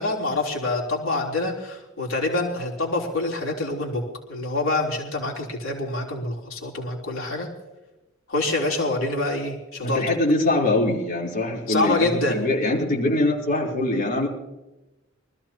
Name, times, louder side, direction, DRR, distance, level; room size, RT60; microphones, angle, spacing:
voice 1, 0.0-4.0 4.3-7.5 8.3-10.0 11.7-12.4, left 2 dB, 80° left, -1 dB, 3.6 m, -26 dB
voice 2, 9.8-14.3, left 2 dB, 45° left, -3 dB, 3.8 m, -23 dB
25.0 x 14.5 x 3.0 m, 1.0 s
head